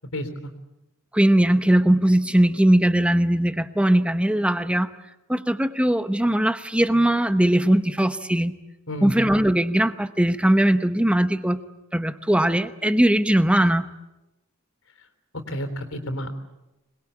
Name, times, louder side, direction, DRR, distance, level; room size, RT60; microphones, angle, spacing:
voice 1, 1.1-4.9 5.3-8.5 9.0-11.6 11.9-13.9, right 1 dB, 5° right, 11 dB, 0.9 m, -20 dB
voice 2, 15.5-16.4, equal, 75° left, 8 dB, 3.7 m, -30 dB
26.5 x 21.0 x 8.6 m, 0.97 s
head